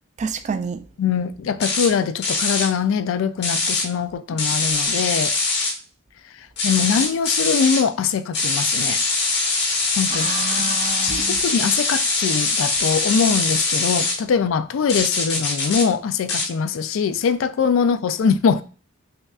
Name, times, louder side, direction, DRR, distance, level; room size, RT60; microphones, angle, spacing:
voice 1, 0.2-0.8 10.1-11.4, right 5 dB, 35° right, 0.3 m, -29 dB
voice 2, 1.0-5.3 6.6-9.0 10.0-10.3 11.0-18.6, left 6 dB, 80° left, 0.3 m, -22 dB
sound 1, 1.6-1.9 2.2-2.7 3.4-3.9 4.4-5.7 6.6-7.8 8.3-14.2 14.9-15.9 16.3-16.5, left 3 dB, 60° left, 1.1 m, -22 dB
5.2 x 2.4 x 2.3 m
head